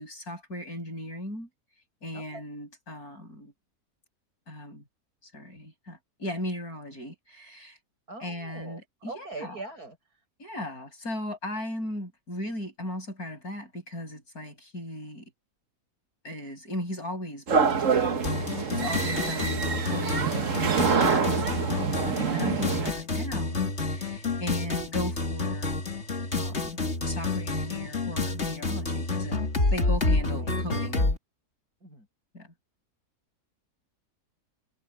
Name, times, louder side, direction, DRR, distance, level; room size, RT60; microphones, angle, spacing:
voice 1, 0.0-1.5 2.0-3.5 4.5-4.8 5.2-7.8 8.2-9.6 10.4-15.3 16.2-25.8 26.3-29.4 29.7-31.1 32.3-32.5, left 1 dB, 75° left, 8.5 m, -37 dB
voice 2, 8.1-10.2 30.4-30.6 31.8-32.1, right 3 dB, 80° right, 8.2 m, -42 dB
sound 1, 17.5-22.9, right 6 dB, 55° right, 1.7 m, -26 dB
sound 2, 18.2-31.2, left 3 dB, 45° left, 3.1 m, -29 dB
omnidirectional pair, 1.6 m